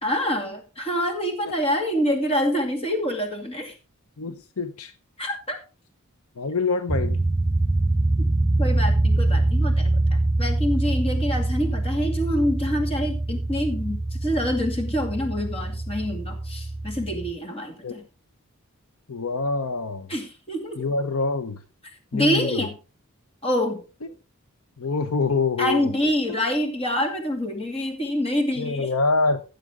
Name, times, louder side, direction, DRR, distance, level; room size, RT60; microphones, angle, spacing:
voice 1, 0.0-3.7 5.2-5.6 8.6-18.0 20.1-20.9 22.1-22.7 23.4-23.9 25.6-28.9, equal, 25° left, 2.3 m, -26 dB
voice 2, 4.2-4.9 6.4-7.2 17.8-18.0 19.1-20.1 20.8-21.6 22.1-22.6 24.8-25.9 28.6-29.4, left 3 dB, 70° left, 0.8 m, -25 dB
sound 1, 6.9-17.3, right 2 dB, 15° right, 0.8 m, -24 dB
16.0 x 6.6 x 3.6 m
head